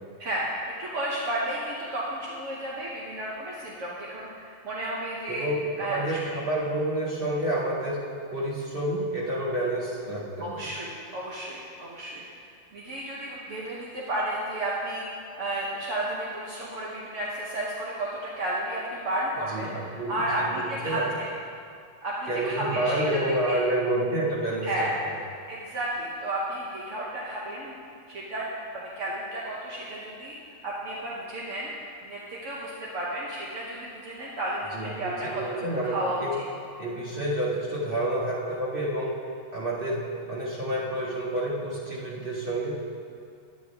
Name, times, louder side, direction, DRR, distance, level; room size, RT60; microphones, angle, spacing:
voice 1, 0.2-5.5 5.8-6.4 10.4-12.3 12.7-15.0 15.4-21.3 22.0-23.0 23.5-23.6 24.6-25.0 25.5-27.8 28.1-28.5 28.7-30.4 30.6-31.7 32.0-35.4 35.8-36.4, right 1 dB, 70° right, -5 dB, 1.4 m, -32 dB
voice 2, 5.3-8.0 8.3-10.6 19.5-21.0 22.3-24.7 34.7-36.3 36.8-39.1 39.5-40.0 40.3-42.8, right 1 dB, 45° right, -7 dB, 2.1 m, -29 dB
11.5 x 9.2 x 3.4 m, 2.4 s
omnidirectional pair, 1.3 m